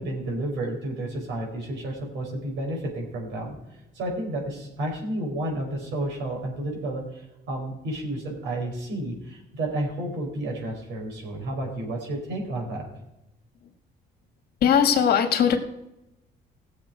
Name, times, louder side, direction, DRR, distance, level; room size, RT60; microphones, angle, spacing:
voice 1, 0.0-12.9, right 1 dB, 85° right, 0 dB, 4.8 m, -31 dB
voice 2, 14.6-15.6, left 8 dB, 60° left, 7 dB, 1.6 m, -19 dB
17.5 x 7.3 x 5.0 m, 0.91 s
cardioid pair, 150°, 18 cm